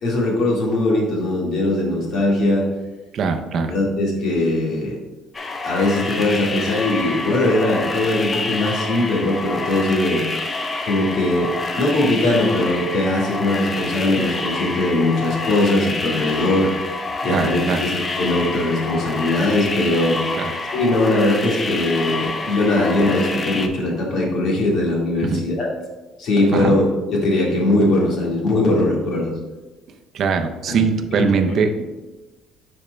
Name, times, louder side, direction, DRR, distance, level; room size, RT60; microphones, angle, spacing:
voice 1, 0.0-2.6 3.7-5.0 5.6-10.3 10.8-11.5 11.8-16.7 17.2-20.2 20.7-25.7 26.2-26.8 27.1-29.4 30.7-30.8 31.1-31.6, left 2 dB, 55° left, -3 dB, 1.8 m, -20 dB
voice 2, 3.1-3.7 17.3-17.8 20.4-20.5 25.2-25.4 26.5-26.7 30.1-31.8, right 5 dB, 45° right, 6 dB, 0.5 m, -21 dB
sound 1, 5.3-23.7, left 3 dB, 20° left, 0.5 m, -27 dB
9.9 x 4.3 x 2.2 m, 1.2 s
cardioid pair, 150°, 0 cm